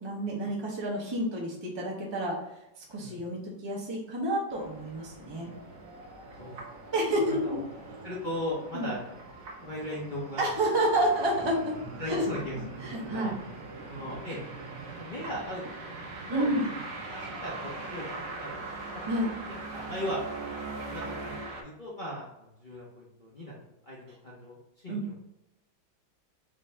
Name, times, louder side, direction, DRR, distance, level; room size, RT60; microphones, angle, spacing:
voice 1, 0.0-2.4 2.8-5.5 6.9-7.6 8.7-8.9 10.4-11.8 12.1-12.2 12.8-13.3 16.3-16.6 19.0-19.3 24.9-25.1, right 1 dB, 25° right, -3 dB, 0.6 m, -29 dB
sound 1, 4.5-21.6, right 3 dB, 55° right, 1.1 m, -41 dB
voice 2, 7.1-7.6 8.0-9.0 9.6-10.5 12.0-12.8 13.1-13.3 13.8-14.4 15.0-15.6 16.3-16.4 16.7-16.8 17.1-17.5 17.9-18.6 18.9-20.2 20.9-23.5 23.9-25.1, equal, 45° left, -5 dB, 0.6 m, -38 dB
5.1 x 2.7 x 3.3 m, 0.86 s
omnidirectional pair, 2.0 m